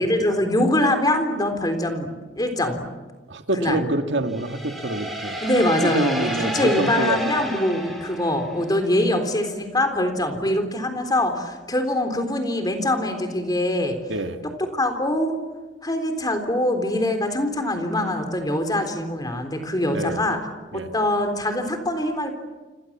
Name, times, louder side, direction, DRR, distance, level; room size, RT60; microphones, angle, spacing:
voice 1, 0.0-2.9 3.5-3.8 5.4-14.0 14.7-15.4 15.8-20.4 20.7-22.3, left 1 dB, 20° left, 6 dB, 3.6 m, -23 dB
voice 2, 3.3-5.4 5.8-7.4 14.1-14.4 19.9-20.2 20.7-20.9, right 2 dB, 60° right, 6 dB, 2.0 m, -26 dB
sound 1, 4.3-9.0, right 1 dB, ahead, 7.0 m, -31 dB
29.0 x 27.5 x 7.4 m, 1.2 s
head